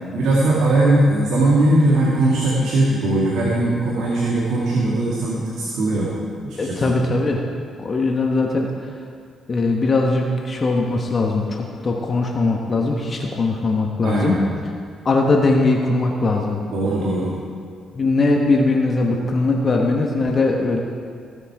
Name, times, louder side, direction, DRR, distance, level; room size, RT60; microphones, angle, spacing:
voice 1, 0.1-6.1 6.4-6.9 14.0-14.4 16.6-17.3, right 2 dB, 75° right, -6 dB, 2.2 m, -19 dB
voice 2, 6.6-7.4 7.8-8.7 9.5-14.4 15.0-16.6 17.9-20.8, left 3 dB, 40° left, 1 dB, 1.2 m, -20 dB
16.0 x 8.2 x 4.8 m, 2.2 s
cardioid pair, 90°, 0 cm